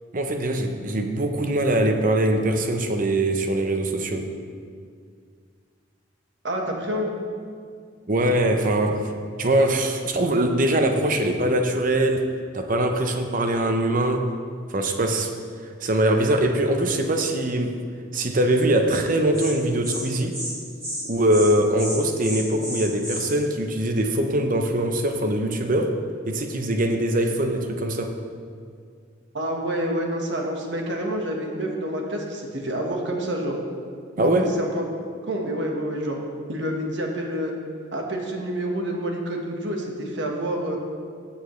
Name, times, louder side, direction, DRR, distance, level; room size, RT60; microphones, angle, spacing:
voice 1, 0.1-4.3 8.1-9.1 9.4-12.3 12.5-14.3 14.7-15.3 15.6-17.8 18.1-20.4 21.0-26.0 26.3-28.2 34.2-34.5, right 1 dB, 45° right, 5 dB, 0.8 m, -22 dB
voice 2, 6.4-7.1 29.3-33.6 34.2-34.3 34.6-34.8 35.3-36.2 36.5-37.5 37.9-40.8, right 1 dB, 70° right, 1 dB, 1.4 m, -28 dB
Insect, 19.0-19.1 19.3-19.5 19.8-20.0 20.3-20.5 20.8-21.0 21.3-21.5 21.8-23.3, equal, 15° right, 2.0 m, -32 dB
15.5 x 7.1 x 3.2 m, 2.1 s
head